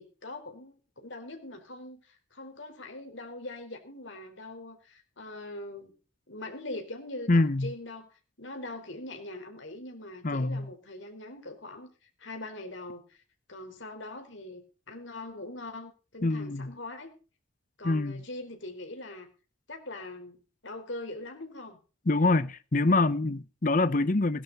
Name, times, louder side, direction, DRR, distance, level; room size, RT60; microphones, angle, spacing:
voice 1, 0.0-5.9 6.3-8.1 8.4-11.9 12.2-13.2 13.5-17.1 17.8-19.3 19.7-21.8, left 2 dB, 70° left, 4.4 m, -42 dB
voice 2, 7.3-7.7 10.2-10.7 16.2-16.7 17.8-18.2 22.1-24.4, left 2 dB, 40° left, 0.7 m, -25 dB
18.0 x 11.0 x 4.1 m
head